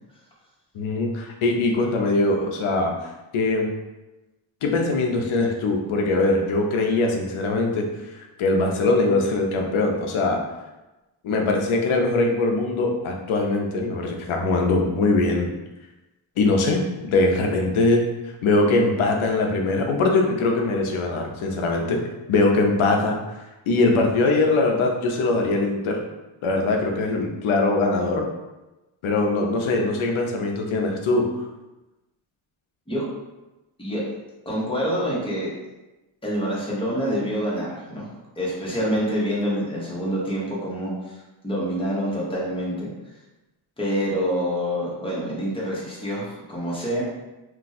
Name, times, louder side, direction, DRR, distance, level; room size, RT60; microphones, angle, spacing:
voice 1, 0.7-2.9 3.3-3.7 4.6-10.4 11.2-15.5 16.4-18.0 18.4-22.0 22.3-23.2 23.7-26.0 26.4-28.3 29.0-31.2, left 2 dB, 85° left, 2 dB, 0.7 m, -22 dB
voice 2, 34.4-35.5 36.2-38.1 38.4-41.2 41.4-42.9 43.8-47.0, equal, 10° left, -6 dB, 1.0 m, -26 dB
2.6 x 2.3 x 4.0 m, 1.1 s
wide cardioid pair, 120°, 48 cm